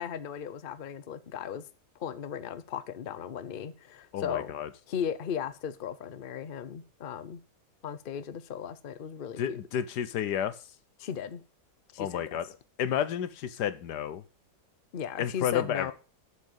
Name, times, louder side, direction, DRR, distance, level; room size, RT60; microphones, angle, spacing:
voice 1, 0.0-1.6 2.0-4.5 4.9-7.4 7.8-9.6 11.0-11.4 11.9-12.4 14.9-15.9, left 8 dB, 45° left, 0.8 m, -36 dB
voice 2, 4.1-4.7 9.4-10.6 12.0-12.4 12.8-14.2 15.2-15.9, left 9 dB, 80° left, 1.5 m, -31 dB
8.3 x 7.5 x 8.0 m
omnidirectional pair, 1.7 m